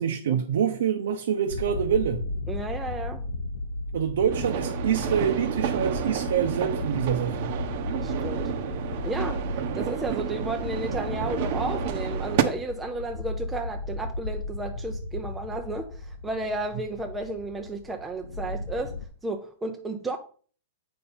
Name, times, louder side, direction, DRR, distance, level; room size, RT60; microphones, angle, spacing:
voice 1, 0.0-2.2 3.9-7.5, right 8 dB, 75° right, 0.9 m, -26 dB
sound 1, 1.5-19.0, left 2 dB, 85° left, 0.7 m, -34 dB
voice 2, 2.5-3.2 7.9-8.5 9.0-20.2, right 2 dB, 10° right, 0.5 m, -33 dB
sound 2, 4.3-12.4, right 10 dB, 45° right, 0.8 m, -30 dB
8.2 x 5.3 x 4.3 m
supercardioid pair, 160°, 0 cm